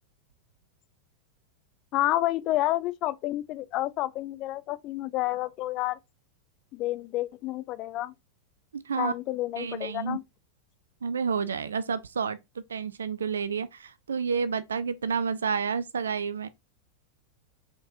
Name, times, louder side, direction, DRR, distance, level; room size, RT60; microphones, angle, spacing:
voice 1, 1.9-6.0 6.7-8.1 9.0-10.2, left 15 dB, 40° left, 0.3 m, -29 dB
voice 2, 8.7-9.1 9.6-10.2 11.0-12.4 12.7-16.5, right 6 dB, 70° right, 0.4 m, -30 dB
5.0 x 3.9 x 2.6 m
figure-of-eight pair, 90°, 0 cm